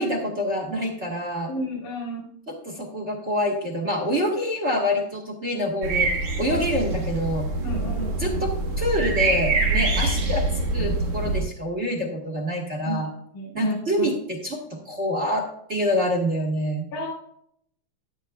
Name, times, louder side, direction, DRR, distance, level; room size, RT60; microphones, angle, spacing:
voice 1, 0.0-1.5 2.5-7.6 7.9-10.5 10.7-13.1 13.5-16.9, equal, 35° right, 0 dB, 1.1 m, -26 dB
voice 2, 1.5-2.3 6.5-6.6 7.6-8.3 12.8-13.0 13.3-14.1 16.9-17.1, equal, 75° left, -3 dB, 3.1 m, -31 dB
sound 1, 5.8-11.4, right 3 dB, 65° right, 2.8 m, -25 dB
13.5 x 10.5 x 2.3 m, 0.67 s
omnidirectional pair, 3.5 m